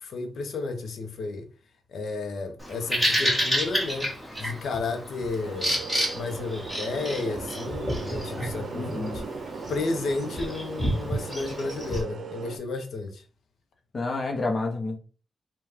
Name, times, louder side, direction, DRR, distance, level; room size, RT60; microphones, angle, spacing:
voice 1, 0.0-1.5 1.9-4.1 4.4-5.8 6.1-9.2 9.7-13.2, left 3 dB, 80° left, 0.7 m, -32 dB
Bird vocalization bird call bird song, 2.6-12.0, equal, 10° left, 1.3 m, -30 dB
sound 1, 5.4-12.6, right 4 dB, 70° right, 0.6 m, -38 dB
voice 2, 8.7-9.3 13.9-15.0, left 3 dB, 35° left, 0.7 m, -29 dB
5.4 x 2.3 x 3.5 m
wide cardioid pair, 170°, 0 cm